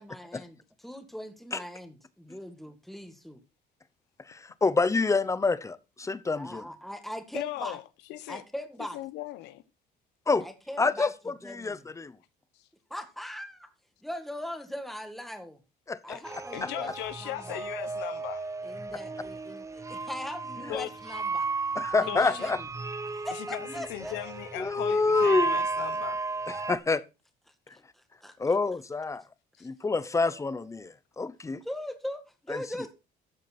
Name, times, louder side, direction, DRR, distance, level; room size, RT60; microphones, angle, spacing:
voice 1, 0.0-3.4 6.3-7.8 8.3-9.0 10.4-11.1 11.4-11.9 12.9-13.7 14.0-15.6 16.0-16.9 17.2-17.6 18.6-21.5 22.0-22.6 23.1-24.3 27.7-28.3 30.2-30.8 31.7-32.9, left 1 dB, ahead, 2.0 m, -40 dB
voice 2, 4.2-6.7 10.3-10.5 10.8-12.2 15.9-16.2 16.6-16.7 20.6-20.8 21.7-22.6 24.6-25.6 26.5-27.0 27.7-27.8 28.4-29.3 29.6-31.6 32.5-32.6, left 3 dB, 20° left, 0.8 m, -27 dB
voice 3, 7.3-7.8 8.1-8.4 8.9-9.6 16.1-16.2 16.5-18.5 20.7-20.9 22.1-22.4 23.3-26.2, left 15 dB, 90° left, 1.1 m, -38 dB
sound 1, 16.2-26.8, right 4 dB, 20° right, 0.7 m, -34 dB
13.5 x 7.4 x 4.4 m
cardioid pair, 110°, 17 cm